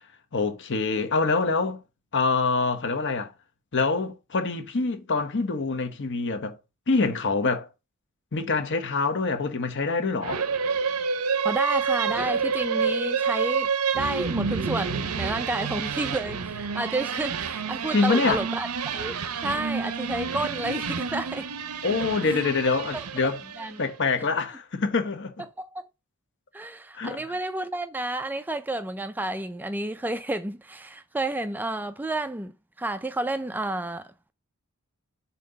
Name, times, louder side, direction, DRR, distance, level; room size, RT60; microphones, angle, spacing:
voice 1, 0.3-1.8 2.1-3.3 3.7-6.6 6.9-7.7 8.3-10.4 17.9-18.4 21.8-23.4 23.8-25.3 27.0-27.2, left 4 dB, 55° left, 1.0 m, -25 dB
sound 1, 10.2-23.8, right 5 dB, 80° right, 0.7 m, -29 dB
voice 2, 11.4-21.5 22.2-22.4 22.9-23.0 23.6-23.8 25.6-25.9 26.5-34.3, right 2 dB, 10° right, 0.3 m, -31 dB
7.3 x 2.9 x 5.2 m
head